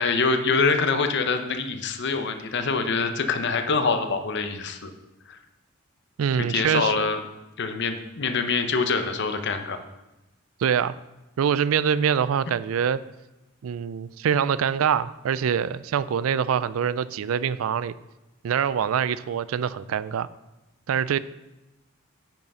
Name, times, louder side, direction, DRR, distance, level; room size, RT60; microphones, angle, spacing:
voice 1, 0.0-4.9 5.3-5.4 6.5-7.2 7.6-9.8, left 4 dB, 60° left, 7 dB, 0.8 m, -25 dB
voice 2, 6.2-6.9 10.6-10.9 11.4-13.0 13.6-17.9 18.4-20.3 20.9-21.2, right 8 dB, 80° right, 17 dB, 0.4 m, -24 dB
8.9 x 5.6 x 5.5 m, 0.99 s
head